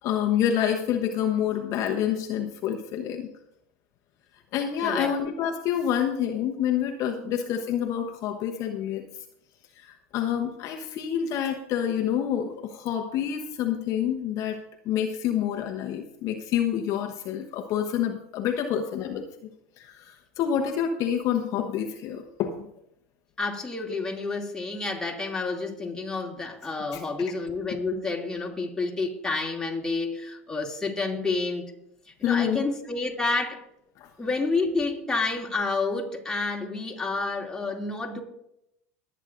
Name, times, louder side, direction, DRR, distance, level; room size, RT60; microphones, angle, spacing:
voice 1, 0.0-3.3 4.5-9.0 9.8-19.2 19.8-22.7 26.9-27.0 32.2-32.6 34.0-34.1, left 9 dB, 50° left, 3 dB, 1.0 m, -27 dB
voice 2, 4.8-5.1 7.2-7.4 23.4-31.7 32.1-33.6 34.2-38.2, left 3 dB, 10° left, -1 dB, 2.5 m, -29 dB
21.5 x 8.9 x 2.6 m, 0.80 s
hypercardioid pair, 95°, 7 cm